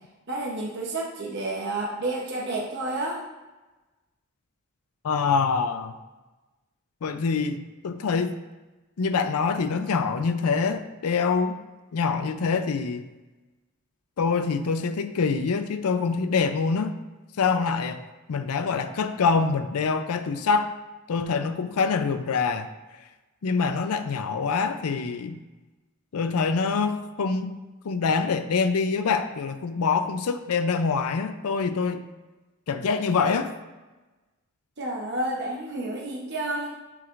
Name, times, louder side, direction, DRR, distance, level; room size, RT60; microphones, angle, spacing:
voice 1, 0.3-3.2 34.8-36.7, right 2 dB, 50° right, -3 dB, 0.9 m, -30 dB
voice 2, 5.0-6.0 7.0-8.4 9.0-11.6 11.9-13.0 14.2-16.9 17.4-18.0 18.3-20.7 21.1-22.7 23.4-25.4 26.1-27.6 27.8-32.0 32.7-33.5, left 5 dB, 85° left, 9 dB, 0.5 m, -25 dB
9.4 x 4.7 x 2.5 m, 1.1 s
head